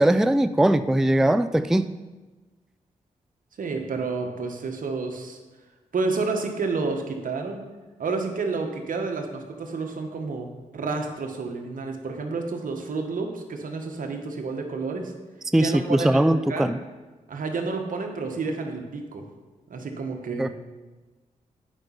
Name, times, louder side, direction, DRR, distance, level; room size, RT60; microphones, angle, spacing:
voice 1, 0.0-1.9 15.5-16.8 20.4-20.5, right 1 dB, 5° right, 12 dB, 0.3 m, -20 dB
voice 2, 3.6-5.4 5.9-7.6 8.0-10.5 10.7-15.1 15.6-16.8 17.3-19.3 19.7-20.5, right 4 dB, 70° right, 4 dB, 1.3 m, -30 dB
8.9 x 5.3 x 5.7 m, 1.2 s
cardioid pair, 55°, 15 cm